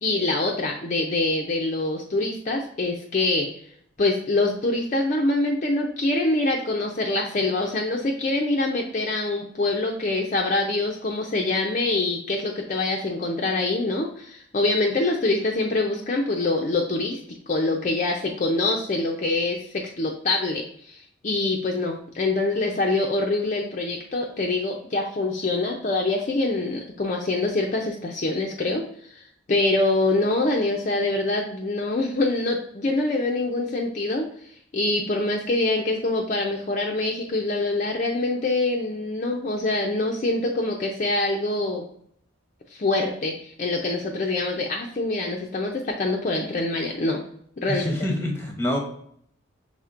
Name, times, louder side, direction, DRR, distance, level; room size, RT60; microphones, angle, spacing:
voice 1, 0.0-3.5 4.0-17.2 17.5-28.8 29.1-29.2 29.5-34.3 34.7-41.9 42.7-47.2 47.6-48.0, left 2 dB, 40° left, 1 dB, 0.5 m, -25 dB
voice 2, 47.7-48.8, left 1 dB, 10° left, 1 dB, 0.8 m, -26 dB
5.7 x 3.5 x 2.5 m, 0.66 s
head